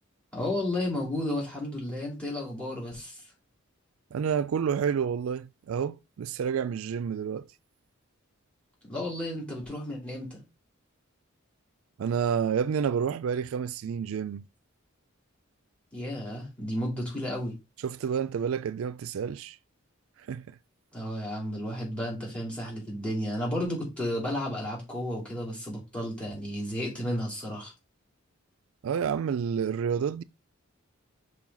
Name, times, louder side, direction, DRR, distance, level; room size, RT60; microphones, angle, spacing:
voice 1, 0.3-3.2 8.8-10.4 15.9-17.5 20.9-27.7, left 1 dB, 5° left, 3.1 m, -32 dB
voice 2, 4.1-7.5 12.0-14.5 17.8-19.6 20.2-20.6 28.8-30.2, right 7 dB, 75° right, 0.3 m, -29 dB
6.0 x 4.8 x 3.9 m
head